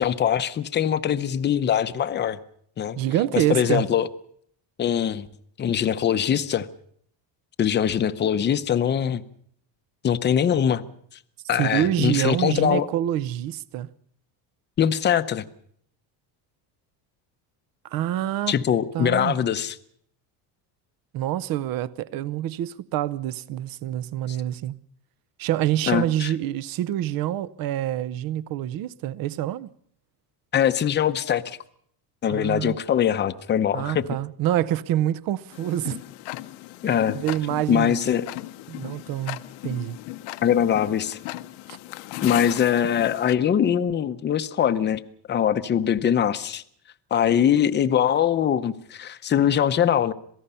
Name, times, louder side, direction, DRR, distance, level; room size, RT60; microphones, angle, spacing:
voice 1, 0.0-2.4 2.8-3.0 3.3-4.1 4.8-5.3 5.6-6.7 7.6-9.2 10.0-10.8 11.5-12.9 14.8-15.4 18.5-19.7 24.3-24.4 25.9-26.3 30.5-31.6 32.2-34.1 36.8-37.2 37.7-38.3 40.4-41.2 42.2-45.0 45.3-46.6 47.1-50.1, left 9 dB, 25° left, 0.7 m, -22 dB
voice 2, 3.0-3.8 11.6-13.9 17.8-18.6 18.9-19.4 21.1-24.8 25.4-29.7 32.3-32.8 33.7-36.0 37.1-38.0 38.7-40.0 41.7-41.8, right 12 dB, 50° right, 0.8 m, -26 dB
Tick-tock, 35.5-43.4, left 17 dB, 85° left, 1.1 m, -37 dB
27.0 x 18.0 x 5.6 m
cardioid pair, 160°, 46 cm